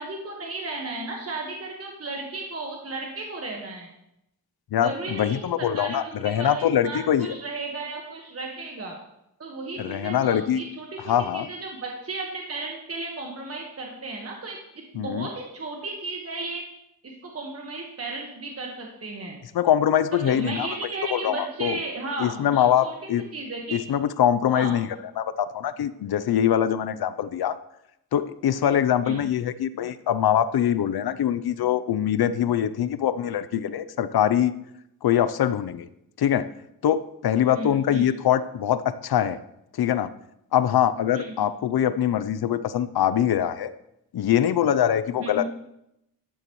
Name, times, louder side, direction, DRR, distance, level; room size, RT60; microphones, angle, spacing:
voice 1, 0.0-3.9 4.8-9.0 9.4-14.6 14.9-16.6 17.0-19.4 20.1-23.8 24.5-24.8 29.0-29.3 37.5-38.1 41.1-41.3 45.2-45.5, right 2 dB, 40° right, 0 dB, 1.5 m, -34 dB
voice 2, 4.7-7.3 9.8-10.6 11.0-11.5 14.9-15.3 19.5-20.7 21.1-21.8 22.2-23.2 23.7-24.9 25.2-27.6 28.1-34.5 35.0-35.9 36.2-36.5 36.8-39.4 39.8-40.1 40.5-43.7 44.1-45.5, left 10 dB, 70° left, 14 dB, 0.6 m, -23 dB
12.5 x 9.8 x 3.1 m, 0.82 s
wide cardioid pair, 130°, 39 cm